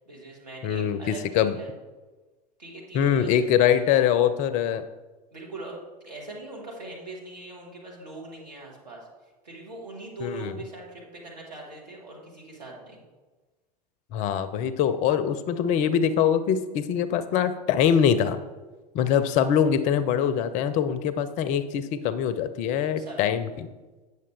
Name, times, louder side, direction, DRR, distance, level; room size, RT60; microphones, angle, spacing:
voice 1, 0.0-1.7 2.6-3.3 5.3-9.1 9.4-13.0 23.0-23.3, right 2 dB, 75° right, -3 dB, 2.1 m, -41 dB
voice 2, 0.6-1.6 2.9-4.8 10.2-10.5 14.1-18.4 18.9-23.7, left 8 dB, 35° left, 13 dB, 0.4 m, -23 dB
8.6 x 6.6 x 3.4 m, 1.2 s
figure-of-eight pair, 85°, 21 cm